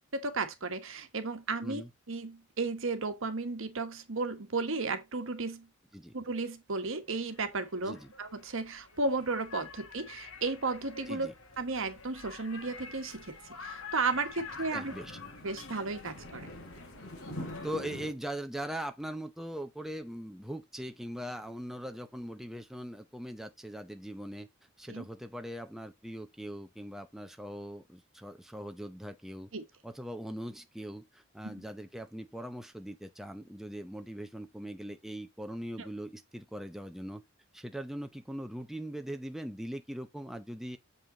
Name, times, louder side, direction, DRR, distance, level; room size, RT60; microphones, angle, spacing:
voice 1, 0.1-1.8 2.1-5.7 6.1-11.3 11.6-13.3 13.6-14.9 15.4-16.5 24.9-25.0 29.5-29.6 31.4-31.6 35.8-35.9, right 3 dB, 70° right, 1.4 m, -34 dB
sound 1, 7.1-17.8, left 5 dB, 85° left, 1.8 m, -48 dB
sound 2, 12.5-18.1, left 1 dB, 55° left, 4.1 m, -46 dB
voice 2, 14.7-15.2 17.6-24.5 24.8-29.5 29.8-37.2 37.5-40.8, equal, ahead, 0.7 m, -41 dB
7.4 x 5.5 x 3.9 m
head